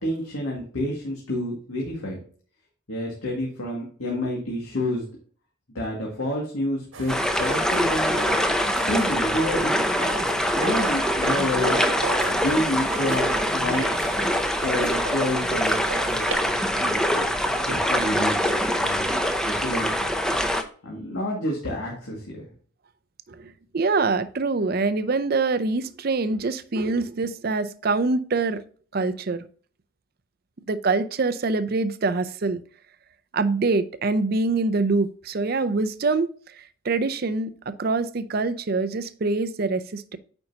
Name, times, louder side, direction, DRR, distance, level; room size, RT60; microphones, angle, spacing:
voice 1, 0.0-2.2 2.9-5.0 5.7-8.3 8.9-10.0 10.5-11.8 12.3-13.9 14.6-16.3 16.7-17.0 17.7-18.5 18.7-19.1 19.4-19.9 20.8-22.5, left 1 dB, 85° left, 2.1 m, -29 dB
sound 1, 6.9-16.3, right 3 dB, 75° right, 1.3 m, -36 dB
sound 2, 7.1-20.6, equal, 5° left, 0.5 m, -24 dB
voice 2, 23.3-28.6 28.9-29.4 30.7-32.6 33.3-40.2, right 3 dB, 50° right, 0.5 m, -25 dB
8.8 x 5.3 x 2.8 m
head